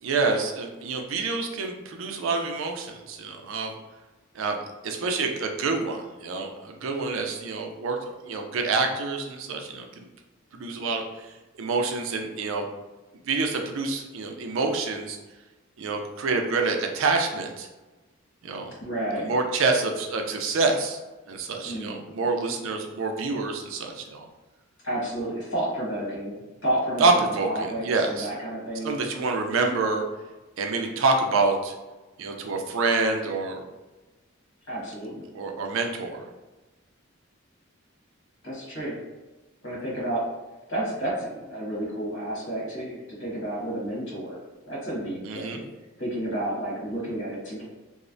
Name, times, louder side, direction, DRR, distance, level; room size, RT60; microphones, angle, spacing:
voice 1, 0.0-3.7 4.3-4.6 4.8-8.0 8.2-10.1 10.5-12.7 13.3-15.2 15.8-17.7 18.4-18.7 19.2-21.0 21.3-24.2 27.0-28.3 28.8-30.0 30.6-31.7 32.2-33.6 35.3-36.2 45.3-45.6, right 3 dB, 70° right, 4 dB, 0.4 m, -27 dB
voice 2, 18.8-19.3 21.6-22.2 24.8-28.9 34.7-35.3 38.4-39.0 39.6-40.2 40.7-44.4 44.6-45.6 46.0-47.6, right 1 dB, 65° left, -7 dB, 1.4 m, -31 dB
3.0 x 2.0 x 2.5 m, 1.1 s
head